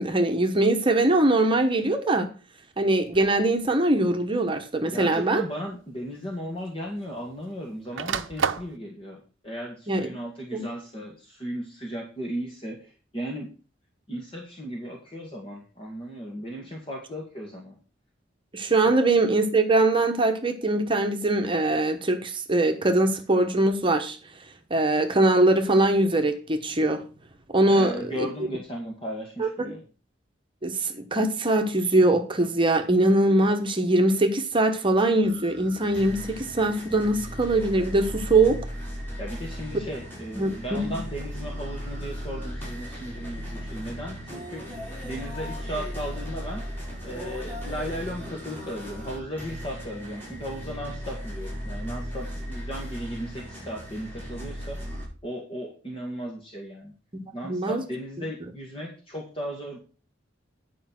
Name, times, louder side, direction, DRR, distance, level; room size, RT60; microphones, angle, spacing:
voice 1, 0.0-2.3 2.8-5.4 9.9-10.1 10.5-10.7 18.5-24.2 24.7-27.0 27.5-28.3 29.4-29.7 30.6-38.6 40.3-41.0 57.1-57.8, right 2 dB, 25° right, 5 dB, 1.2 m, -22 dB
sound 1, 3.1-3.4 4.5-4.6 6.0-6.1 6.3-7.4 7.7-8.8, right 6 dB, 85° right, 0.7 m, -30 dB
voice 2, 4.8-13.5 14.1-17.8 27.7-29.8 39.2-44.7 45.0-46.6 47.0-54.8 55.2-56.9 57.3-59.8, equal, 30° left, -1 dB, 1.9 m, -36 dB
sound 2, 35.2-55.0, equal, 10° left, 5.1 m, -36 dB
9.9 x 5.4 x 6.0 m, 0.36 s
head